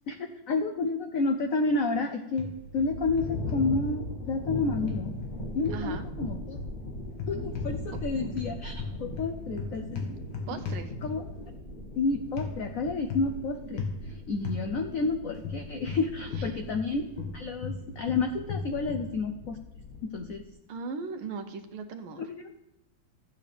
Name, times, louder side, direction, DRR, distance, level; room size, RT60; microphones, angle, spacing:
voice 1, 0.1-5.1 5.5-6.6 7.3-10.1 10.5-10.6 11.0-11.2 12.0-19.6 20.0-20.4 22.3-22.5, left 3 dB, 90° left, 6 dB, 0.7 m, -30 dB
sound 1, 2.4-2.9 3.2-3.6 4.9-5.9 7.1-8.1 8.4-11.4 12.4-12.5 13.1-13.4 13.8-14.0 14.4-14.6 15.4-16.9 17.2-19.1, left 5 dB, 75° left, 1.9 m, -36 dB
sound 2, 2.5-20.5, left 1 dB, 35° left, 0.7 m, -39 dB
voice 2, 5.7-6.0 10.5-10.9 16.4-16.6 20.7-22.2, right 4 dB, 85° right, 7 dB, 1.7 m, -38 dB
14.0 x 8.2 x 3.3 m, 0.87 s
omnidirectional pair, 2.3 m